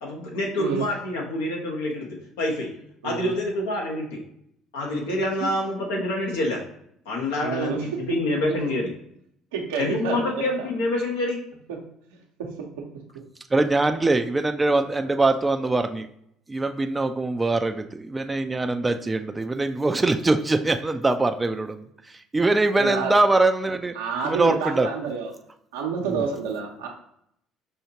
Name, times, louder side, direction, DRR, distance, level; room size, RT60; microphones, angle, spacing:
voice 1, 0.0-2.7 3.0-4.2 4.7-6.6 7.0-8.9 9.8-11.4, left 1 dB, 85° left, -1 dB, 1.2 m, -27 dB
voice 2, 7.4-7.8 8.3-8.6 9.5-10.3 11.7-11.8 12.4-12.7 22.8-23.1 23.9-25.3 25.7-26.9, right 6 dB, 85° right, 1 dB, 0.8 m, -29 dB
voice 3, 13.5-16.1 16.5-21.8 22.3-23.9 24.2-24.9 26.1-26.2, right 2 dB, 20° right, 6 dB, 0.4 m, -22 dB
5.6 x 2.8 x 2.8 m, 0.72 s
hypercardioid pair, 70°, 0 cm